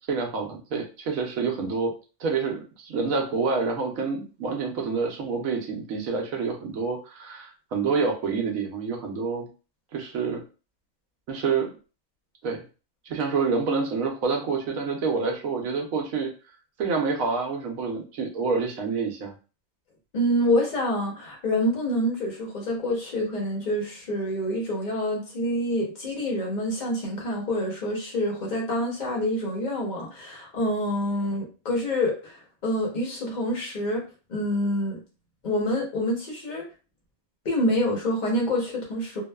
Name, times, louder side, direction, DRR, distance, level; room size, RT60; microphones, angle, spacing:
voice 1, 0.1-1.9 2.2-9.5 9.9-10.4 11.3-11.7 12.4-12.6 13.1-16.3 16.8-19.3, right 4 dB, 75° right, 1 dB, 1.1 m, -27 dB
voice 2, 20.1-34.0 34.3-35.0 35.4-36.6 37.4-39.2, left 1 dB, 40° left, -2 dB, 0.8 m, -27 dB
2.9 x 2.0 x 2.2 m, 0.34 s
omnidirectional pair, 1.5 m